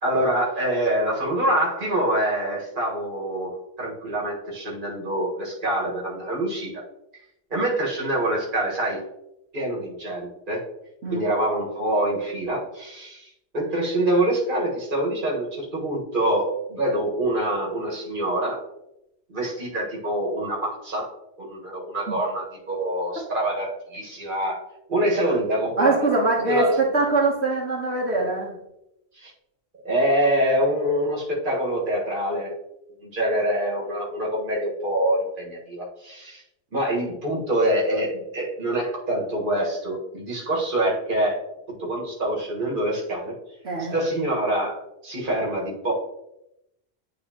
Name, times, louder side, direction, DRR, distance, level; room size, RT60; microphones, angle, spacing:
voice 1, 0.0-6.7 7.5-9.0 9.5-10.6 11.1-13.3 13.5-18.6 19.3-21.1 21.4-24.6 24.9-26.1 26.5-26.8 29.2-29.3 29.8-32.5 33.0-36.4 36.7-41.4 41.8-43.3 43.9-44.8 45.0-45.9, right 1 dB, 50° right, -3 dB, 1.8 m, -25 dB
voice 2, 25.8-28.5 43.6-43.9, right 3 dB, 70° right, -4 dB, 1.5 m, -23 dB
9.3 x 3.8 x 2.9 m, 0.84 s
omnidirectional pair, 1.1 m